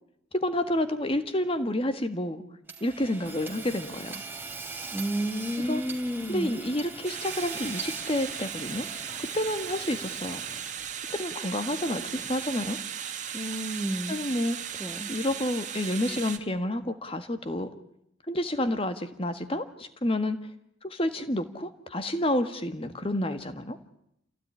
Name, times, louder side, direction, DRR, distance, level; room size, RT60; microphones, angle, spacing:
voice 1, 0.3-2.4 2.8-4.2 5.6-5.8 6.3-8.9 9.3-10.4 11.1-12.8 14.1-14.6 15.1-17.7 18.3-20.4 20.8-23.8, left 1 dB, 30° left, 10 dB, 1.6 m, -29 dB
Hammer / Sawing, 2.7-10.9, right 4 dB, 10° right, 2.9 m, -41 dB
voice 2, 4.9-6.5 13.3-14.2 14.8-15.1, equal, 10° left, 3 dB, 1.6 m, -31 dB
sound 1, 7.0-16.4, right 8 dB, 40° right, 1.7 m, -37 dB
27.5 x 16.5 x 9.8 m, 0.78 s
head